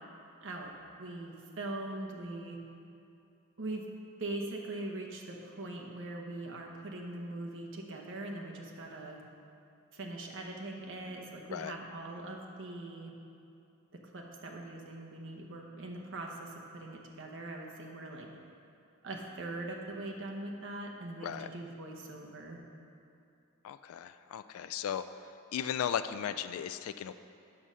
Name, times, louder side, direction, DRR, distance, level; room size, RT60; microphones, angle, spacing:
voice 1, 0.4-0.7 1.0-2.6 3.6-3.9 4.2-9.2 9.9-13.1 13.9-18.3 19.0-22.6, right 2 dB, 60° right, 0 dB, 1.0 m, -41 dB
voice 2, 23.6-25.0 25.5-27.1, left 9 dB, 75° left, 12 dB, 0.3 m, -36 dB
8.6 x 6.2 x 5.5 m, 2.6 s
head